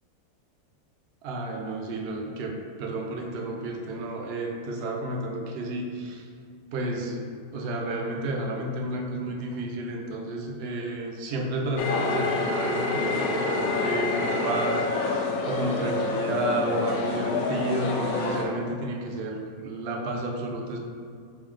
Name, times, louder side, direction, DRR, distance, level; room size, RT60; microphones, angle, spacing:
voice 1, 1.2-6.3 6.7-20.8, right 2 dB, 85° right, 1 dB, 0.5 m, -31 dB
sound 1, 11.8-18.4, left 3 dB, 70° left, 0.9 m, -27 dB
4.3 x 3.2 x 3.6 m, 2.3 s
omnidirectional pair, 1.6 m